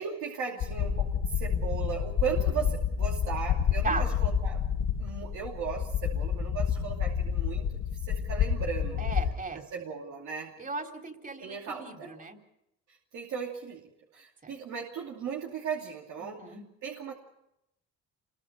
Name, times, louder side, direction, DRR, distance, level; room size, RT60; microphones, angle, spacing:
voice 1, 0.0-4.6 5.0-9.0 9.5-10.5 11.4-12.2 12.9-16.6 16.8-17.1, right 7 dB, 80° right, -1 dB, 2.7 m, -37 dB
sound 1, 0.6-9.3, left 8 dB, 85° left, 3.4 m, -29 dB
voice 2, 9.0-9.6 10.6-12.4 14.4-14.5 16.2-16.6, right 3 dB, 30° right, 3 dB, 3.7 m, -36 dB
27.5 x 22.0 x 5.1 m, 0.82 s
cardioid pair, 90°, 30 cm